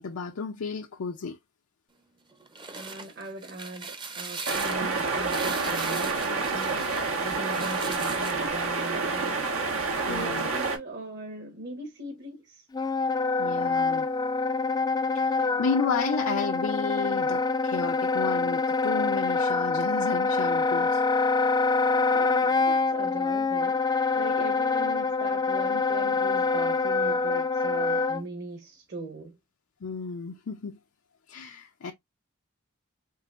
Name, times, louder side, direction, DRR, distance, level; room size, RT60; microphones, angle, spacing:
voice 1, 0.0-1.4 10.1-10.5 13.4-14.1 15.1-21.0 29.8-30.8 31.3-31.9, left 5 dB, 85° left, 0.5 m, -32 dB
sound 1, 2.3-8.5, right 4 dB, 25° right, 0.6 m, -39 dB
voice 2, 2.7-9.4 10.0-12.7 22.1-29.4, right 2 dB, 55° right, 1.2 m, -40 dB
sound 2, 4.5-10.8, right 3 dB, 85° right, 1.1 m, -28 dB
Wind instrument woodwind instrument, 12.7-28.2, left 4 dB, 20° left, 0.3 m, -25 dB
3.8 x 3.7 x 2.4 m
head